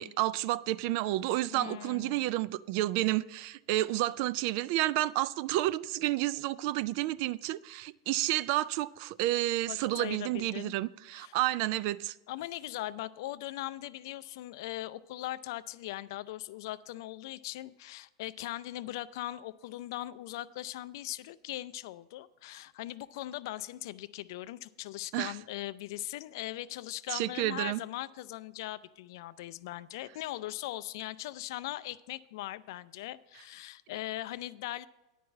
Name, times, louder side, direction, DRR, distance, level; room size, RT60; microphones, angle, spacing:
voice 1, 0.0-12.1 25.1-25.4 27.1-27.8, right 15 dB, 55° right, 0.3 m, -30 dB
voice 2, 1.5-2.3 9.7-10.8 11.1-11.4 12.3-34.9, left 15 dB, 65° left, 0.4 m, -40 dB
10.0 x 4.7 x 7.3 m
hypercardioid pair, 110°, 2 cm